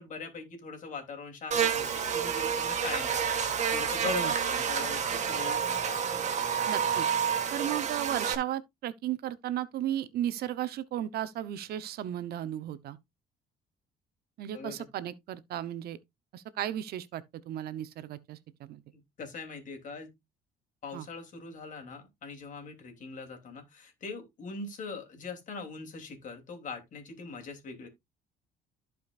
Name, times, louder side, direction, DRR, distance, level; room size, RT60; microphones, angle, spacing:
voice 1, 0.0-3.2 3.7-6.0 14.5-14.8 18.9-20.1 20.8-27.9, left 5 dB, 50° left, 3.1 m, -41 dB
Buzz, 1.5-8.3, right 7 dB, 45° right, 1.8 m, -29 dB
voice 2, 6.7-7.1 7.5-13.0 14.4-16.0 16.3-18.8 20.9-21.1, right 11 dB, 70° right, 0.8 m, -35 dB
14.5 x 5.1 x 2.5 m
cardioid pair, 110°, 17 cm